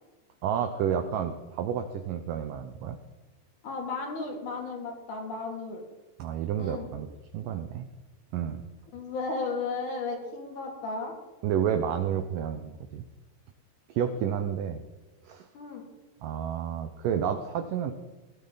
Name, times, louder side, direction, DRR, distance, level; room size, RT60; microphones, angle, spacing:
voice 1, 0.4-3.0 6.2-7.1 7.3-7.9 8.3-8.7 11.4-13.1 13.9-14.8 15.2-15.5 16.2-17.9, right 8 dB, 90° right, 8 dB, 1.8 m, -30 dB
voice 2, 3.6-5.8 6.6-6.9 8.9-11.1 15.5-15.8, left 3 dB, 50° left, 1 dB, 3.5 m, -34 dB
19.0 x 13.0 x 4.0 m, 1.1 s
omnidirectional pair, 4.9 m